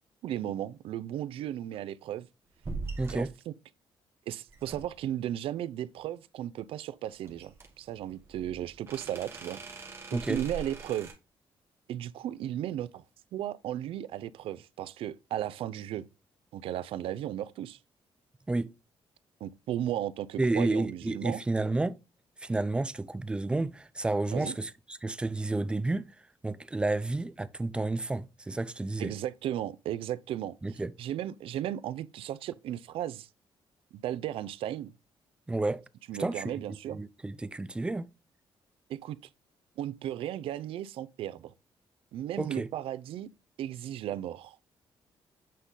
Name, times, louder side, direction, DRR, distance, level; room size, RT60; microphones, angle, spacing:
voice 1, 0.2-2.3 3.1-3.5 4.3-11.1 11.9-13.0 13.3-16.1 16.5-17.8 19.4-21.4 24.3-24.5 29.0-30.6 31.0-33.3 33.9-34.9 36.1-37.0 38.9-39.2 39.8-41.5 42.1-43.3 43.6-44.6, right 11 dB, 80° right, 0.4 m, -35 dB
sound 1, 2.6-3.3 4.5-5.1 7.2-11.1, right 3 dB, 25° right, 1.6 m, -42 dB
voice 2, 3.0-3.3 10.1-10.4 18.5-18.7 20.4-22.0 22.4-26.1 26.4-29.1 30.6-30.9 35.5-35.8 36.2-38.1 42.4-42.7, right 2 dB, 10° right, 0.3 m, -31 dB
8.4 x 4.0 x 3.7 m
cardioid pair, 155°, 9 cm